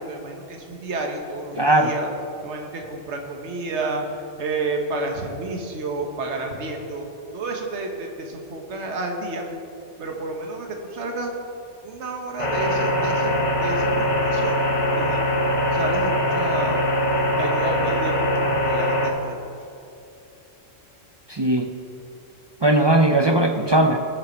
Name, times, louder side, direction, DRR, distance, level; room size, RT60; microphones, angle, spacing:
voice 1, 0.0-2.1 2.4-9.4 10.0-11.4 11.8-13.3 13.6-14.6 14.9-15.2 15.7-16.9 17.4-18.3 18.6-19.5, right 3 dB, 60° right, 2 dB, 1.6 m, -30 dB
voice 2, 1.5-1.9 21.3-21.7 22.6-24.0, right 1 dB, 45° right, 4 dB, 0.3 m, -18 dB
sound 1, 12.4-19.1, equal, 30° left, 0.9 m, -22 dB
20.0 x 6.9 x 4.5 m, 2.7 s
omnidirectional pair, 1.3 m